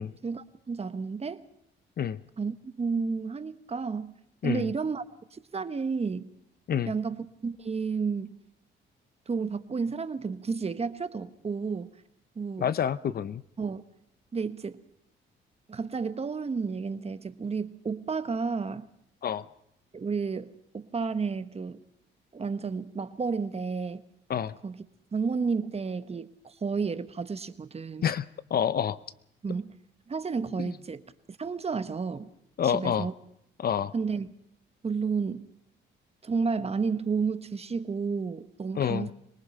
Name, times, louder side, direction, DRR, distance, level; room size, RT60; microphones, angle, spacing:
voice 1, 0.2-1.4 2.4-4.1 4.4-5.0 5.3-6.3 6.9-8.4 9.3-11.9 12.4-12.7 13.6-13.8 14.3-14.8 15.7-18.9 19.9-21.8 22.3-24.0 24.6-24.8 25.1-28.1 29.4-29.7 30.1-31.0 31.4-32.3 32.7-33.1 33.9-34.3 34.8-35.4 36.2-39.1, right 5 dB, 30° right, 12 dB, 1.1 m, -31 dB
voice 2, 12.6-13.4 19.2-19.4 24.3-24.6 28.0-28.2 28.5-29.0 30.6-30.7 32.6-33.1 33.6-33.9 38.8-39.1, left 8 dB, 50° left, 16 dB, 0.7 m, -28 dB
25.5 x 19.0 x 5.5 m, 0.76 s
cardioid pair, 90°, 20 cm